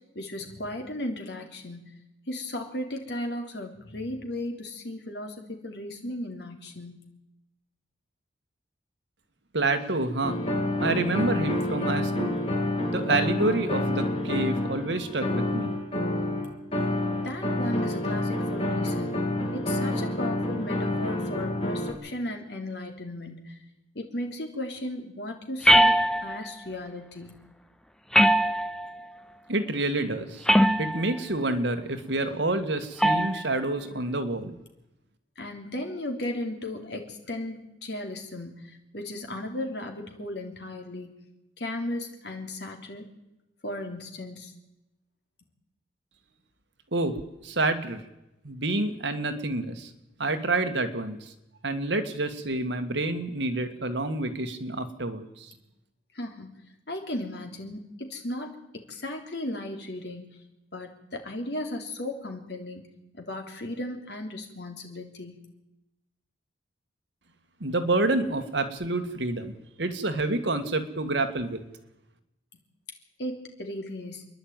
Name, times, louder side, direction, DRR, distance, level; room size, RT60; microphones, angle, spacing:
voice 1, 0.1-1.9 2.3-7.1 17.2-23.6 23.9-27.3 35.3-41.1 41.6-43.1 43.6-44.5 55.5-55.6 56.1-56.5 56.9-60.4 60.7-62.8 63.1-65.4 73.2-74.3, left 1 dB, 60° left, 3 dB, 3.3 m, -36 dB
voice 2, 9.5-10.4 10.8-12.4 12.9-15.8 29.5-30.4 30.8-34.5 46.9-48.0 48.4-49.9 50.2-51.3 51.6-55.5 67.6-69.5 69.8-71.6, right 2 dB, 75° right, 7 dB, 1.8 m, -28 dB
sound 1, 10.2-21.9, left 1 dB, 30° left, 3.2 m, -28 dB
sound 2, 25.6-26.5 28.1-29.0 30.5-31.1 33.0-33.4, equal, 5° left, 0.6 m, -20 dB
27.5 x 11.0 x 9.0 m, 0.93 s
head